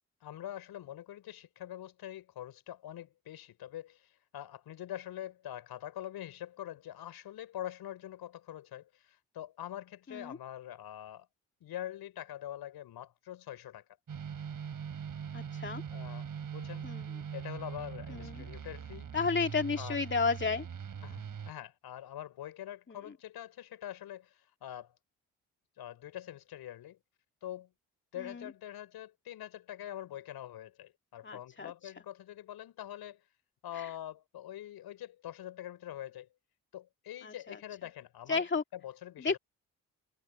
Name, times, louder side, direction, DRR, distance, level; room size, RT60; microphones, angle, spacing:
voice 1, 0.2-11.3 11.6-13.8 15.9-16.9 17.3-19.1 19.8-20.0 21.0-25.0 25.8-27.0 27.4-27.7 28.1-33.2 33.6-36.3 36.7-38.5 38.7-39.4, left 12 dB, 70° left, 5.8 m, -44 dB
crazy fuzzy D, 14.1-21.5, right 7 dB, 55° right, 5.0 m, -41 dB
voice 2, 15.3-15.8 16.8-17.0 18.1-18.4 19.1-20.6 22.9-23.0 28.2-28.5 31.2-31.7 33.8-33.9 37.2-37.6 38.3-38.6 39.2-39.4, left 4 dB, 30° left, 2.4 m, -32 dB
hypercardioid pair, 45°, 39 cm